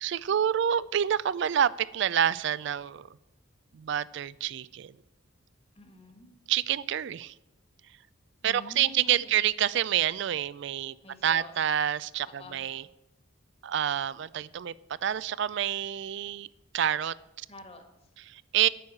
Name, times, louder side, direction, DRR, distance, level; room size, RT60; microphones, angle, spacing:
voice 1, 0.0-3.1 3.7-4.9 6.5-7.3 8.4-10.9 11.2-12.8 13.6-14.7 15.0-16.5 16.7-17.5 18.3-18.7, right 10 dB, 60° right, 19 dB, 0.3 m, -28 dB
voice 2, 5.7-6.3 8.4-9.4 11.0-11.5 12.2-12.7 17.5-18.1, left 1 dB, 30° left, 5 dB, 1.5 m, -48 dB
9.2 x 6.4 x 8.5 m, 0.95 s
head